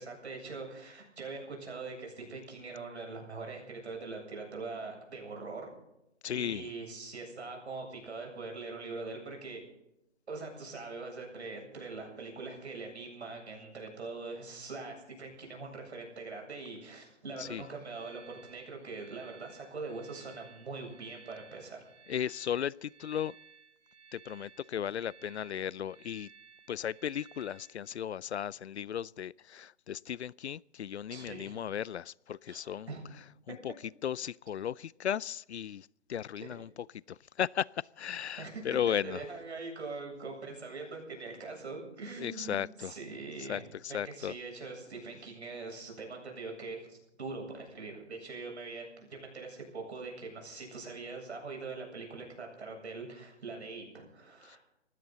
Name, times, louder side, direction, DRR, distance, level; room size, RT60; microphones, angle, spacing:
voice 1, 0.0-5.7 6.3-9.6 10.3-21.8 31.1-31.6 32.5-33.1 38.4-38.6 39.0-43.6 43.9-54.6, right 3 dB, 65° right, 7.9 m, -42 dB
voice 2, 6.2-6.7 17.4-17.6 22.1-23.3 24.1-26.3 26.7-32.9 33.5-33.7 34.0-39.3 42.2-42.9 43.4-44.3 54.4-54.6, left 9 dB, 65° left, 0.5 m, -36 dB
sound 1, 17.5-27.9, right 6 dB, 30° right, 3.3 m, -58 dB
20.0 x 16.0 x 4.1 m
hypercardioid pair, 170°, 35 cm